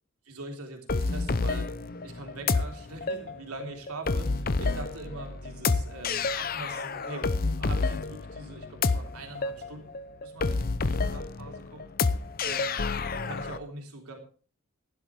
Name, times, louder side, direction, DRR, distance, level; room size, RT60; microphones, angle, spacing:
voice 1, 0.3-1.7 2.0-9.9 10.2-12.8 13.0-14.2, right 2 dB, 85° right, 2 dB, 3.5 m, -43 dB
sound 1, 0.9-13.6, left 3 dB, 40° left, 0.6 m, -29 dB
16.0 x 11.5 x 3.5 m, 0.40 s
head